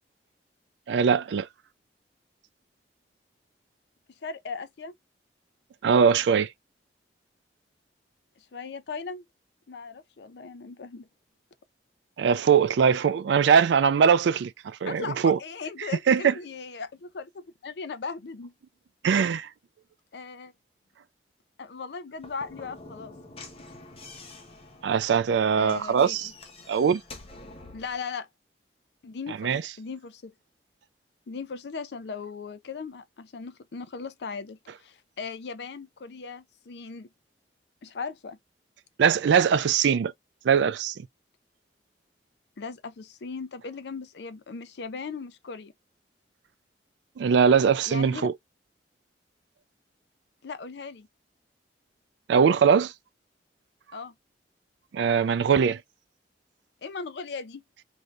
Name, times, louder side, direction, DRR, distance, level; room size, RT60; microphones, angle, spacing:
voice 1, 0.9-1.5 5.8-6.5 12.2-15.4 16.1-16.3 19.0-19.5 24.8-26.3 26.7-27.0 29.4-29.6 39.0-40.1 40.4-41.0 47.2-48.3 52.3-52.9 54.9-55.8, right 6 dB, 75° right, 0.3 m, -21 dB
voice 2, 4.2-4.9 8.5-9.2 9.7-11.1 14.9-18.5 20.1-20.5 21.6-23.1 25.6-26.3 27.7-28.3 29.0-30.3 31.3-37.1 37.8-38.4 42.6-45.7 47.9-48.3 50.4-51.1 53.9-54.1 56.8-57.6, left 5 dB, 65° left, 0.5 m, -38 dB
Slam / Knock, 22.1-28.0, left 2 dB, 30° left, 0.8 m, -47 dB
3.3 x 2.7 x 2.4 m
head